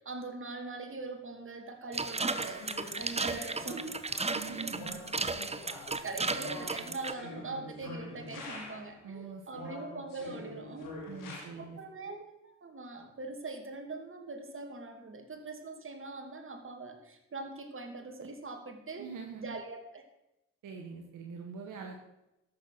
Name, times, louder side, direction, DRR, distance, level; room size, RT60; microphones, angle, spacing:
voice 1, 0.0-2.6 3.0-4.0 4.4-4.8 5.7-11.1 11.6-19.1 19.4-20.0, right 3 dB, 40° right, 4 dB, 2.6 m, -42 dB
sound 1, 1.9-7.1, right 3 dB, 20° right, 0.9 m, -34 dB
sound 2, 2.0-9.0 9.5-11.4, left 2 dB, 75° left, 2.6 m, -46 dB
voice 2, 4.3-5.0 9.0-9.7 11.1-11.8 19.0-19.6 20.6-22.0, right 5 dB, 65° right, 3 dB, 1.4 m, -44 dB
13.0 x 6.9 x 6.1 m, 0.91 s
hypercardioid pair, 45°, 33 cm